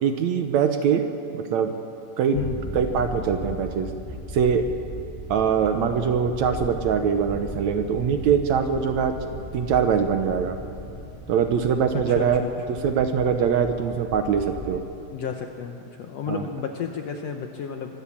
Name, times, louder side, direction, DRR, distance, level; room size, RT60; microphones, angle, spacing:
voice 1, 0.0-1.0 1.3-1.7 2.2-2.4 2.7-3.9 4.3-4.7 5.3-9.1 9.5-10.6 11.3-12.4 12.7-14.8 16.3-16.5, right 7 dB, 70° right, 7 dB, 1.9 m, -22 dB
sound 1, 2.3-14.8, left 1 dB, 15° left, 0.7 m, -37 dB
voice 2, 11.9-12.5 15.1-18.0, left 7 dB, 70° left, 4 dB, 1.6 m, -32 dB
23.5 x 16.0 x 7.2 m, 2.8 s
omnidirectional pair, 3.9 m